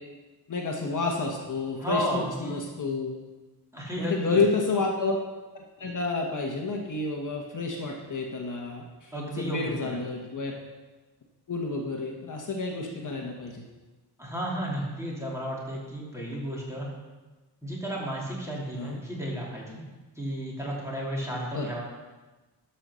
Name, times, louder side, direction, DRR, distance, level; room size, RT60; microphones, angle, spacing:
voice 1, 0.5-3.1 4.0-5.2 5.5-9.1 9.4-10.5 11.5-13.6 18.8-19.0 21.5-21.7, left 3 dB, 50° left, 0 dB, 1.3 m, -30 dB
voice 2, 1.8-2.5 3.7-4.4 9.1-10.0 14.2-16.9 17.6-19.9 20.2-21.8, equal, 5° right, -4 dB, 2.8 m, -33 dB
12.5 x 5.7 x 6.3 m, 1.2 s
wide cardioid pair, 150°, 40 cm